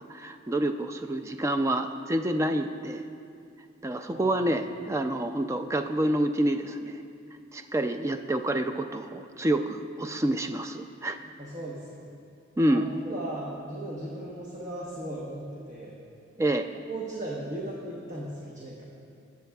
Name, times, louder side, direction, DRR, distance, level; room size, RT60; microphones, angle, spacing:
voice 1, 0.0-3.0 3.8-7.0 7.5-11.2 12.6-12.9 16.4-16.7, right 1 dB, 15° right, 7 dB, 0.3 m, -28 dB
voice 2, 4.1-4.5 11.4-12.2 12.7-16.0 16.7-18.8, right 1 dB, 40° right, -5 dB, 1.1 m, -37 dB
20.0 x 8.1 x 2.3 m, 2.4 s
head